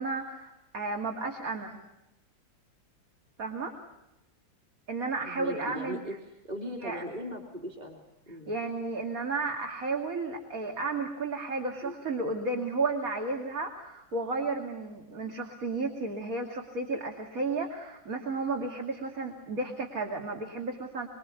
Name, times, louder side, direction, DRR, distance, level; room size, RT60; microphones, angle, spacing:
voice 1, 0.0-1.8 3.4-3.7 4.9-6.0 6.8-7.0 8.5-21.1, right 3 dB, 45° right, 2 dB, 3.1 m, -33 dB
voice 2, 5.2-6.2 6.4-8.5 11.8-11.9, equal, 20° right, 1 dB, 2.9 m, -39 dB
27.0 x 25.0 x 8.4 m, 0.92 s
omnidirectional pair, 2.0 m